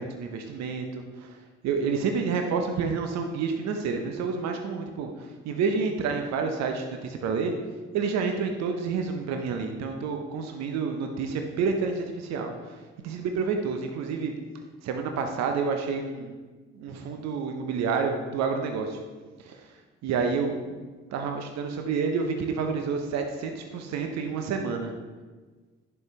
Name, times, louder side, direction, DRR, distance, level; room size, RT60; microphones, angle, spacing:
voice 1, 0.0-1.4 1.6-7.5 7.9-14.3 14.8-16.3 16.7-19.0 19.4-19.6 20.0-20.9 21.1-24.9, right 5 dB, 55° right, 4 dB, 0.9 m, -29 dB
10.5 x 5.6 x 3.2 m, 1.3 s
figure-of-eight pair, 45°, 32 cm